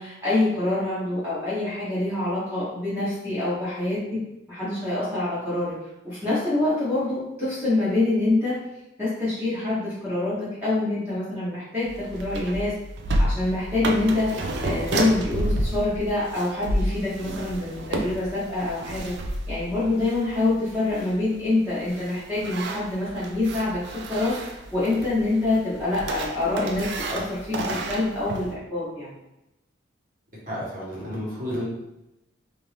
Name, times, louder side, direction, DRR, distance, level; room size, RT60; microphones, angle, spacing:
voice 1, 0.0-4.0 4.5-5.7 6.0-8.6 9.0-12.7 13.2-19.1 19.5-29.1, left 2 dB, 10° right, -11 dB, 0.9 m, -26 dB
sound 1, 11.8-28.5, right 1 dB, 55° right, 0.4 m, -31 dB
voice 2, 30.5-31.7, equal, 40° right, -6 dB, 1.2 m, -31 dB
2.9 x 2.6 x 3.3 m, 0.90 s
head